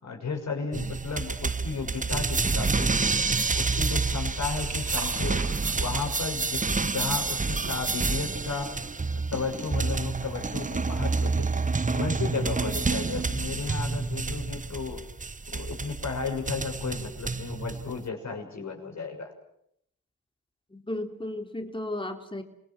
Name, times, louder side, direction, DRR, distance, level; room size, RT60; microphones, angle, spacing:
voice 1, 0.0-2.9 3.5-5.4 5.8-8.7 9.1-11.5 11.9-15.0 15.5-19.3, left 5 dB, 55° left, 3 dB, 6.6 m, -34 dB
sound 1, 0.7-18.1, right 4 dB, 25° right, 1.1 m, -28 dB
Liquid, 3.5-9.1, right 4 dB, 55° right, 4.8 m, -45 dB
voice 2, 20.7-22.4, left 1 dB, 15° left, 5 dB, 3.4 m, -34 dB
27.5 x 20.0 x 7.3 m, 0.74 s
supercardioid pair, 50°, 32 cm